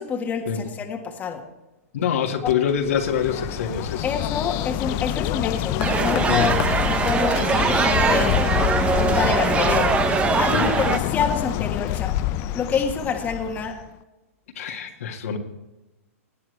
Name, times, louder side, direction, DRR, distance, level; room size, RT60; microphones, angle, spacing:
voice 1, 0.0-1.4 2.4-2.5 4.0-6.6 6.8-8.3 9.0-9.9 10.4-12.1 12.5-13.8, left 6 dB, 20° left, 2 dB, 1.6 m, -27 dB
voice 2, 1.9-4.0 6.3-6.6 10.4-10.7 14.6-15.4, left 8 dB, 70° left, 2 dB, 2.0 m, -25 dB
Bird, 2.5-13.9, left 13 dB, 35° left, 0.5 m, -27 dB
sound 1, 5.8-11.0, right 5 dB, 15° right, 0.8 m, -22 dB
18.5 x 9.7 x 3.3 m, 1.0 s
hypercardioid pair, 135°, 8 cm